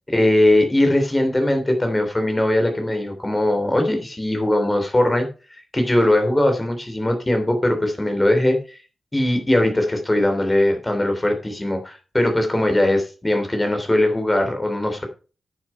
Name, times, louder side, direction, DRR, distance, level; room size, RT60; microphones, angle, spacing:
voice 1, 0.1-8.8 9.1-15.0, left 1 dB, 20° left, 5 dB, 3.2 m, -20 dB
9.4 x 7.4 x 5.5 m, 0.35 s
cardioid pair, 75°, 0 cm